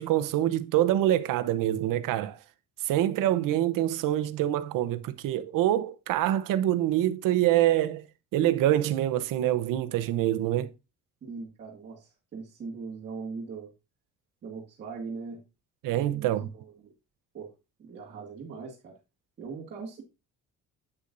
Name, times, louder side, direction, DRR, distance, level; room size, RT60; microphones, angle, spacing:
voice 1, 0.0-2.4 2.8-8.1 8.3-10.7 15.8-16.5, right 13 dB, 80° right, 0.8 m, -25 dB
voice 2, 11.2-13.7 14.4-15.4 16.1-16.9 17.3-17.5 17.8-19.0 19.4-20.0, right 4 dB, 35° right, 1.9 m, -40 dB
8.4 x 8.2 x 2.5 m
cardioid pair, 170°, 32 cm